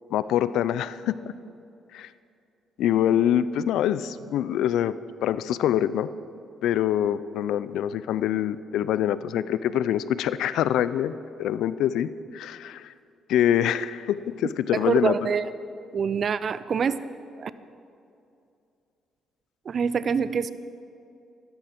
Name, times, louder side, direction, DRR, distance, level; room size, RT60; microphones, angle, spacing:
voice 1, 0.1-1.2 1.9-2.1 2.8-4.9 5.2-6.1 6.6-11.1 11.4-12.9 13.3-15.2, left 10 dB, 85° left, 16 dB, 0.5 m, -25 dB
voice 2, 14.8-15.5 15.9-17.0 17.4-17.5 19.7-20.5, right 6 dB, 50° right, 15 dB, 0.6 m, -25 dB
14.5 x 12.5 x 6.0 m, 2.6 s
cardioid pair, 90°, 0 cm